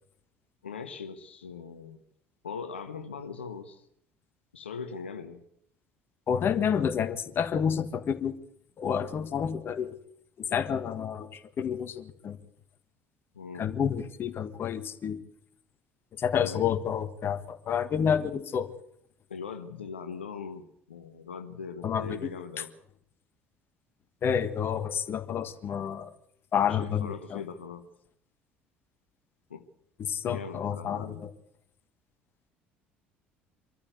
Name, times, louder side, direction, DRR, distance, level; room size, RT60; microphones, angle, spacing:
voice 1, 0.6-2.0 2.4-3.9 4.5-5.4 13.3-13.7 16.4-16.7 19.3-22.7 26.7-27.8 29.5-29.6 30.2-31.3, left 5 dB, 80° left, 8 dB, 1.1 m, -40 dB
voice 2, 6.3-8.3 8.8-9.9 10.4-12.4 13.6-15.2 16.2-18.7 21.8-22.2 24.2-26.1 26.5-27.4 30.0-31.3, left 8 dB, 40° left, 10 dB, 1.7 m, -29 dB
24.5 x 14.0 x 8.1 m, 0.71 s
figure-of-eight pair, 60°, 6 cm